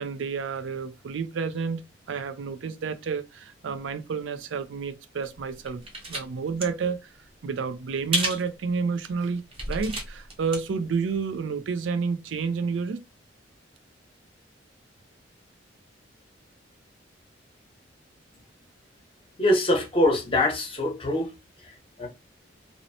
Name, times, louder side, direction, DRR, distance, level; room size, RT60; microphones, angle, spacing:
voice 1, 0.0-1.8 2.1-5.8 6.1-7.1 7.4-13.0, right 5 dB, 80° right, 0.4 m, -30 dB
sound 1, 5.2-6.2 6.5-6.6 8.1-8.5 9.0-9.1 9.5-10.6 10.9-11.0, right 2 dB, 30° right, 0.7 m, -30 dB
voice 2, 19.4-21.3 21.6-22.1, left 1 dB, 30° left, 0.9 m, -24 dB
2.6 x 2.1 x 2.7 m
head